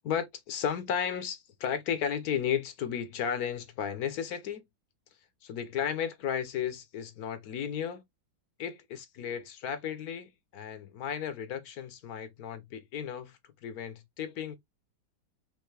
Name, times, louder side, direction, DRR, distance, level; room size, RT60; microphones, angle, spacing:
voice 1, 0.0-4.6 5.4-8.0 8.6-14.6, left 8 dB, 60° left, 1.1 m, -34 dB
5.5 x 3.0 x 3.2 m
omnidirectional pair, 2.3 m